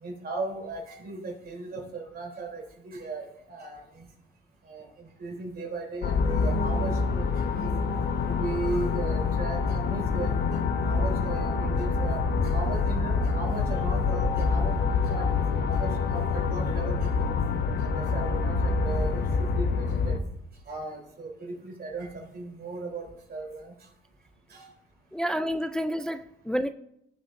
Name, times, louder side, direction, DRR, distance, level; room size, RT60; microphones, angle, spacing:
voice 1, 0.0-3.8 4.7-4.9 5.2-7.7 8.3-10.4 10.8-14.8 15.1-15.3 15.6-17.0 17.8-20.2 20.7-23.7 24.5-24.7, right 3 dB, 50° right, 3.3 m, -36 dB
sound 1, 6.0-20.2, left 4 dB, 60° left, 0.9 m, -26 dB
voice 2, 25.1-26.7, equal, 5° left, 0.4 m, -29 dB
17.0 x 7.3 x 2.6 m
cardioid pair, 90°, 20 cm